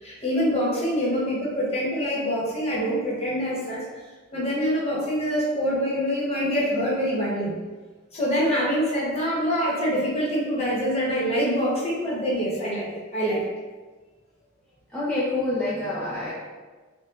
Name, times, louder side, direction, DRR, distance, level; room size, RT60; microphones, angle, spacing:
voice 1, 0.0-3.8 4.3-7.5 8.1-13.4, equal, 30° left, -5 dB, 1.0 m, -25 dB
voice 2, 14.9-16.3, left 2 dB, 5° left, -9 dB, 0.5 m, -27 dB
5.6 x 2.2 x 2.4 m, 1.3 s
head